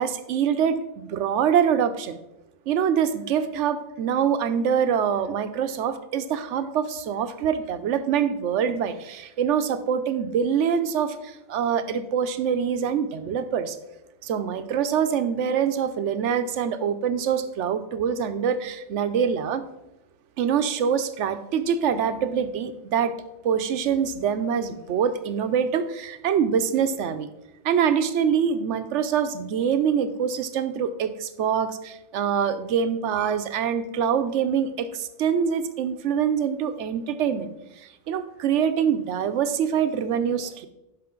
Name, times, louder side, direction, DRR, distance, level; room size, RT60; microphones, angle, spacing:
voice 1, 0.0-2.2 2.7-13.8 14.2-19.6 20.4-23.1 23.4-27.3 27.6-37.5 37.8-40.7, right 7 dB, 90° right, 11 dB, 1.0 m, -25 dB
11.5 x 5.1 x 3.7 m, 0.91 s
omnidirectional pair, 1.2 m